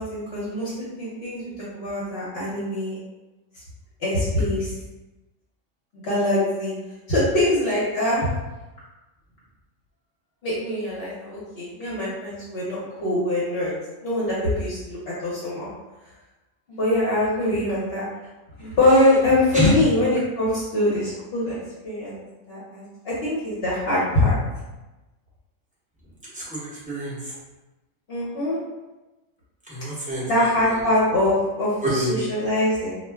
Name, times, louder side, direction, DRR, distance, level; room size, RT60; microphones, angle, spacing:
voice 1, 0.0-3.0 4.0-4.7 6.0-6.7 7.1-8.3 10.4-13.7 14.0-15.7 16.7-18.0 18.6-21.6 21.8-22.2 22.5-24.4 28.1-28.6 30.3-33.0, left 1 dB, 55° left, -9 dB, 1.0 m, -23 dB
voice 2, 26.2-27.3 29.7-30.8 31.8-32.2, left 1 dB, 5° right, -9 dB, 0.8 m, -26 dB
2.4 x 2.1 x 3.4 m, 1.1 s
omnidirectional pair, 1.3 m